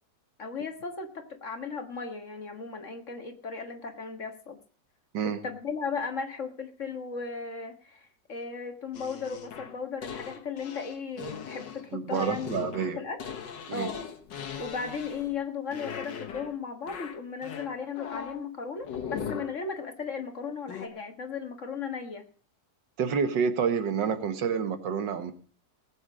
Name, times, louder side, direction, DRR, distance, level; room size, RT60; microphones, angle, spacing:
voice 1, 0.4-4.6 5.4-13.2 13.7-14.0 14.6-22.3, left 5 dB, 45° left, 6 dB, 1.8 m, -36 dB
sound 1, 8.9-15.4 15.7-16.6 16.9-18.4 18.8-19.6 20.7-20.9, left 7 dB, 80° left, 2.0 m, -39 dB
voice 2, 11.9-13.0 13.7-13.9 23.0-25.3, right 6 dB, 80° right, 10 dB, 1.9 m, -28 dB
18.5 x 8.0 x 4.9 m, 0.41 s
omnidirectional pair, 1.9 m